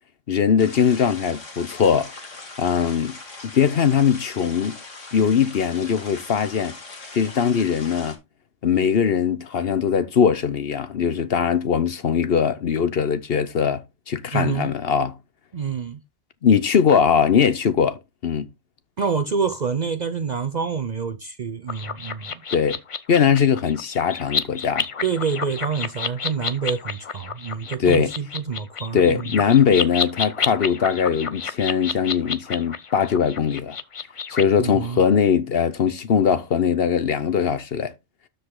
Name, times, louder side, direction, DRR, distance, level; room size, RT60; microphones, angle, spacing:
voice 1, 0.3-2.1 2.6-3.2 3.4-4.8 5.1-6.8 7.1-8.2 8.6-15.2 16.4-18.5 22.5-22.8 23.1-24.9 27.8-28.1 28.9-33.8 34.3-37.9, left 7 dB, 55° left, 1.0 m, -20 dB
sound 1, 0.6-8.1, left 3 dB, 90° left, 2.7 m, -40 dB
voice 2, 14.3-14.7 15.5-16.0 19.0-22.4 25.0-29.4 34.6-35.0, right 6 dB, 45° right, 0.6 m, -27 dB
sound 2, 21.7-34.4, left 5 dB, 40° left, 0.5 m, -30 dB
12.5 x 5.2 x 3.8 m
omnidirectional pair, 1.3 m